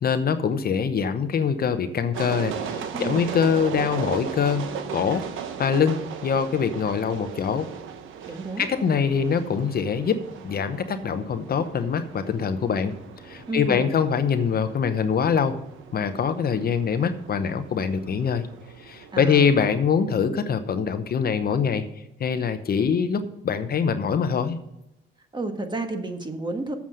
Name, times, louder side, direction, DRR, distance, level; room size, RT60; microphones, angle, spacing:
voice 1, 0.0-4.7 4.9-5.2 5.6-7.7 8.6-12.9 13.2-15.6 15.9-18.4 18.8-21.8 22.2-24.6, left 6 dB, 50° left, 10 dB, 0.8 m, -24 dB
sound 1, 2.1-19.7, right 7 dB, 85° right, 1.0 m, -37 dB
voice 2, 2.9-3.3 8.3-8.7 13.5-13.9 19.1-19.5 25.3-26.7, right 2 dB, 20° right, 6 dB, 1.4 m, -31 dB
7.5 x 7.1 x 6.3 m, 0.87 s
cardioid pair, 90°, 20 cm